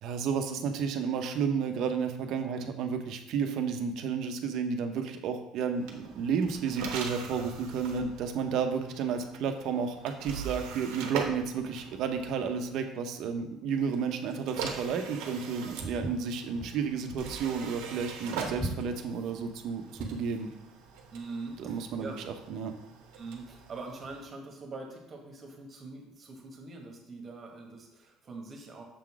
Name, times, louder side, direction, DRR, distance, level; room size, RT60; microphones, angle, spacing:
voice 1, 0.0-20.5 21.6-22.1 22.5-22.7, right 6 dB, 60° right, 6 dB, 0.8 m, -32 dB
sound 1, 5.8-12.7 13.7-24.3, right 5 dB, 90° right, 1.0 m, -42 dB
Walk footsteps, 15.8-20.3, right 1 dB, ahead, 2.0 m, -39 dB
voice 2, 21.1-22.2 23.2-28.8, right 3 dB, 30° right, 1 dB, 1.4 m, -43 dB
6.8 x 3.9 x 4.8 m, 0.88 s
cardioid pair, 135°, 0 cm